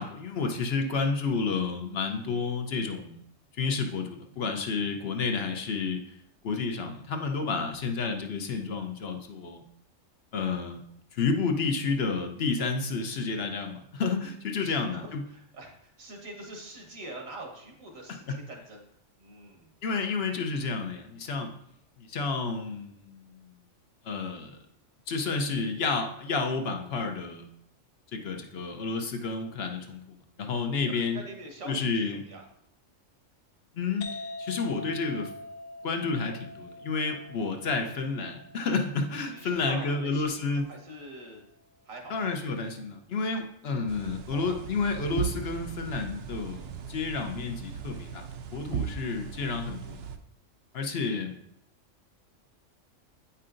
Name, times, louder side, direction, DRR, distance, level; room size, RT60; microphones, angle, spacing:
voice 1, 0.0-3.2 3.6-6.0 6.4-9.6 10.3-10.8 11.1-15.2 19.8-21.5 22.1-23.4 24.0-24.6 25.1-27.5 28.1-31.2 31.7-32.2 33.8-34.1 34.4-35.3 35.8-40.7 42.1-48.2 48.5-50.0 50.7-51.3, left 4 dB, 55° left, 4 dB, 0.9 m, -30 dB
voice 2, 14.6-18.8 19.2-19.7 30.9-32.4 39.3-41.4 41.9-42.2 44.3-44.6, right 2 dB, 85° right, 1 dB, 1.7 m, -44 dB
sound 1, 34.0-41.4, left 2 dB, 90° left, 1.0 m, -44 dB
sound 2, 43.9-50.2, right 8 dB, 65° right, 0.7 m, -37 dB
8.5 x 5.6 x 2.5 m, 0.74 s
omnidirectional pair, 1.3 m